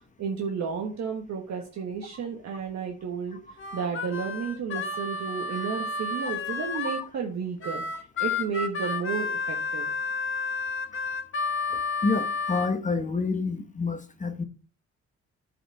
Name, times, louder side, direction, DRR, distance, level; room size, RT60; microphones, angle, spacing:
voice 1, 0.2-9.9, right 6 dB, 65° right, 1.4 m, -32 dB
Harmonica, 3.6-7.1 7.6-12.7, left 4 dB, 40° left, 1.2 m, -31 dB
voice 2, 11.7-14.4, left 4 dB, 25° left, 1.0 m, -28 dB
9.8 x 5.0 x 4.1 m
cardioid pair, 90°, 30 cm